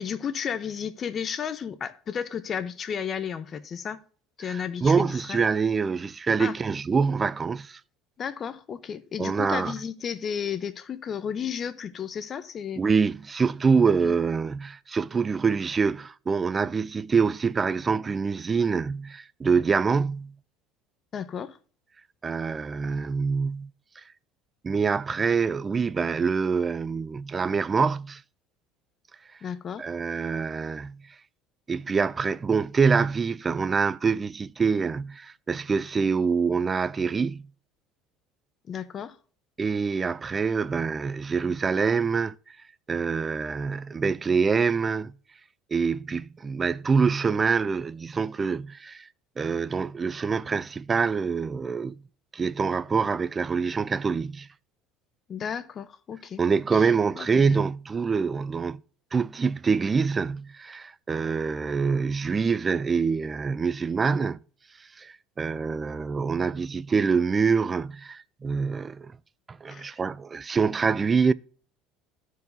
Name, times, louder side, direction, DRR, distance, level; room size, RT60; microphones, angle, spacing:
voice 1, 0.0-4.0 4.4-5.5 6.4-6.6 8.2-12.8 14.0-14.1 21.1-21.6 29.4-29.9 38.7-39.2 55.3-56.4 56.7-57.6 69.7-69.9, left 7 dB, 35° left, 0.7 m, -33 dB
voice 2, 4.5-7.8 9.2-9.7 12.8-20.3 22.2-23.7 24.6-28.2 29.8-31.0 31.7-37.5 39.6-42.6 42.9-45.1 45.7-49.1 49.4-52.0 52.3-54.5 56.4-58.8 59.1-64.4 65.0-69.1 69.5-71.3, right 5 dB, 25° right, 0.3 m, -25 dB
13.5 x 4.7 x 2.6 m
supercardioid pair, 115°, 0 cm